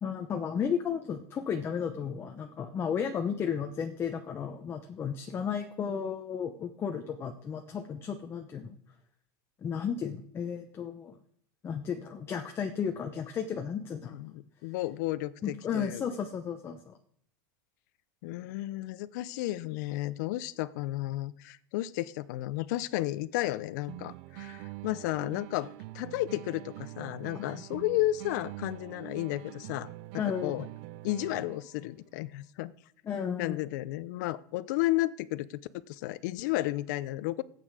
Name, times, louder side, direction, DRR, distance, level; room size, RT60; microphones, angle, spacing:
voice 1, 0.0-8.8 9.6-11.2 11.6-14.1 15.4-17.0 27.3-27.4 30.2-30.7 33.0-33.6, left 7 dB, 20° left, 5 dB, 0.9 m, -33 dB
voice 2, 14.1-16.0 18.2-30.7 31.0-32.7 33.4-35.6 35.9-37.4, left 16 dB, 60° left, 17 dB, 0.7 m, -33 dB
sound 1, 23.9-31.8, right 18 dB, 50° right, 0.5 m, -45 dB
13.5 x 8.6 x 6.3 m, 0.67 s
supercardioid pair, 150°, 11 cm